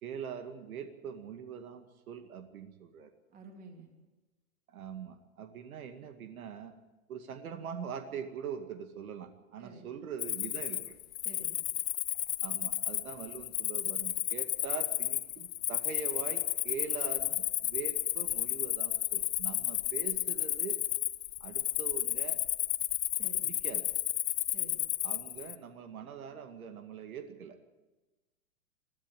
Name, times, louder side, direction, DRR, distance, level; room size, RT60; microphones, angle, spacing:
voice 1, 0.0-3.1 4.7-6.7 7.1-11.0 12.4-20.8 21.4-22.4 23.4-23.9 25.0-27.6, right 7 dB, 80° right, 6 dB, 2.3 m, -43 dB
voice 2, 3.3-3.9 9.6-9.9 11.2-11.6 23.2-23.5 24.5-24.8, right 3 dB, 20° right, 2 dB, 3.6 m, -50 dB
Cricket, 10.2-25.6, left 13 dB, 80° left, 1.1 m, -32 dB
22.0 x 13.5 x 9.1 m, 1.1 s
hypercardioid pair, 150°, 42 cm